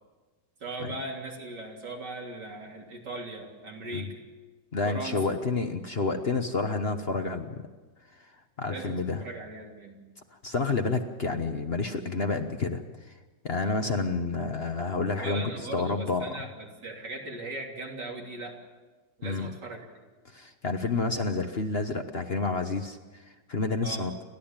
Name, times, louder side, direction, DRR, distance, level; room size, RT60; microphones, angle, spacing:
voice 1, 0.6-4.2 4.8-5.2 8.7-10.1 15.2-18.5 19.2-19.8 23.8-24.0, right 2 dB, 75° right, 0 dB, 3.8 m, -39 dB
voice 2, 4.7-7.5 8.6-9.2 10.4-12.8 13.4-16.3 19.2-19.5 20.3-23.0 23.5-24.1, left 3 dB, 40° left, 6 dB, 1.2 m, -29 dB
30.0 x 12.5 x 8.9 m, 1.3 s
omnidirectional pair, 1.9 m